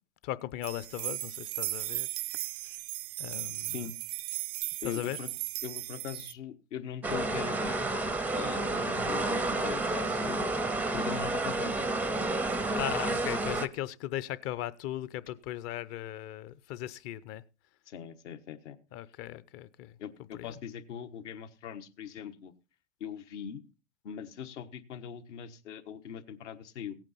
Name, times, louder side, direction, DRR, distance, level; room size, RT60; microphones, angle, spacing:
voice 1, 0.2-2.1 2.6-2.8 3.2-3.9 4.8-5.2 9.0-9.2 12.7-17.4 18.9-19.9 20.3-20.6, left 13 dB, 40° left, 0.7 m, -38 dB
sound 1, 0.6-6.3, right 20 dB, 60° right, 0.5 m, -37 dB
voice 2, 3.6-3.9 4.8-5.3 5.6-7.9 8.3-10.4 10.9-11.9 17.9-18.8 20.0-22.5 23.0-23.6 24.0-27.0, left 8 dB, 70° left, 1.4 m, -41 dB
sound 2, 7.0-13.7, right 2 dB, 5° right, 0.5 m, -30 dB
16.5 x 8.9 x 4.2 m
hypercardioid pair, 110°, 38 cm